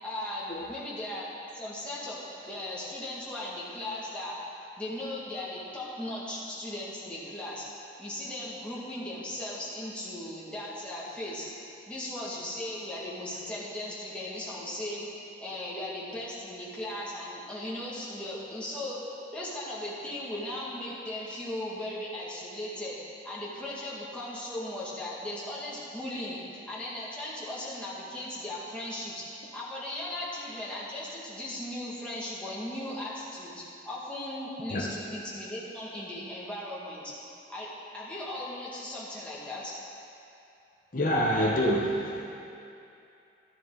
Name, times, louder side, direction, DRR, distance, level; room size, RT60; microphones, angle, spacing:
voice 1, 0.0-1.3 1.5-4.4 4.8-7.6 8.0-11.5 11.9-15.1 15.4-19.0 19.3-23.0 23.2-37.1 37.5-37.7 37.9-39.7, left 1 dB, 5° left, -8 dB, 1.9 m, -37 dB
voice 2, 40.9-42.3, equal, 45° left, -3 dB, 0.9 m, -26 dB
12.5 x 10.0 x 3.8 m, 2.7 s
head